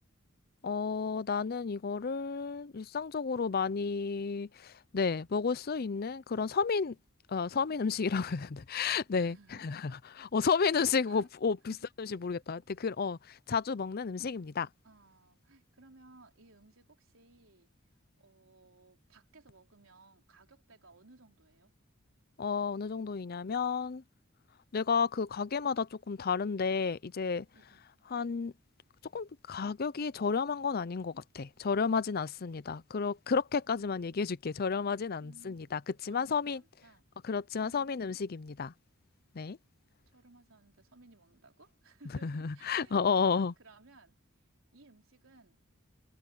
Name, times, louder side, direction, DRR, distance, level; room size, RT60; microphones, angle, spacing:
voice 1, 0.6-7.0 7.3-9.4 9.6-9.9 10.2-14.7 22.4-24.0 24.7-27.5 28.1-28.5 29.1-36.6 37.2-38.7 39.3-39.6 42.2-43.5, left 5 dB, 50° left, 0.5 m, -32 dB
voice 2, 9.1-10.0 10.5-11.3 11.7-11.9 14.8-17.7 18.2-21.7 27.5-27.8 35.2-35.7 36.1-37.1 37.6-38.0 40.1-44.2 44.7-45.6, right 3 dB, 75° right, 3.9 m, -60 dB
head